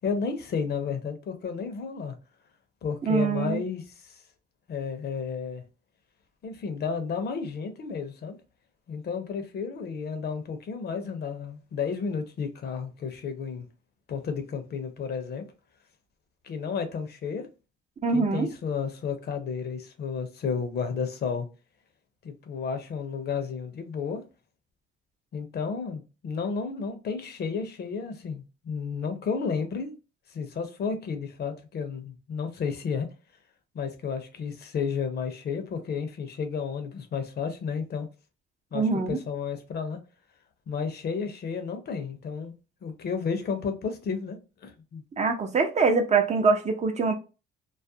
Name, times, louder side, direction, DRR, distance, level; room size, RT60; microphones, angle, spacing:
voice 1, 0.0-2.2 2.8-4.2 4.7-5.6 6.4-8.4 8.9-13.7 14.1-15.5 16.4-17.5 18.1-21.5 22.2-24.2 25.3-29.9 30.3-33.1 33.7-38.1 38.7-40.0 40.7-42.5 42.8-45.0, left 5 dB, 55° left, 0.6 m, -32 dB
voice 2, 3.0-3.6 18.0-18.5 38.7-39.2 45.2-47.1, right 4 dB, 35° right, 0.5 m, -24 dB
2.3 x 2.1 x 2.6 m
cardioid pair, 90°, 20 cm